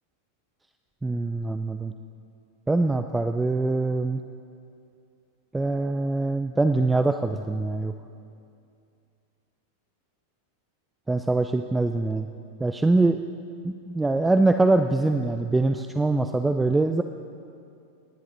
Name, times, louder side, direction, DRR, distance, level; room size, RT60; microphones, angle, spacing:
voice 1, 1.0-1.9 2.7-4.2 5.5-7.9 11.1-12.3 12.6-13.2 13.6-17.0, right 2 dB, 10° right, 7 dB, 0.5 m, -23 dB
27.5 x 10.5 x 4.0 m, 2.5 s
figure-of-eight pair, 90°, 0 cm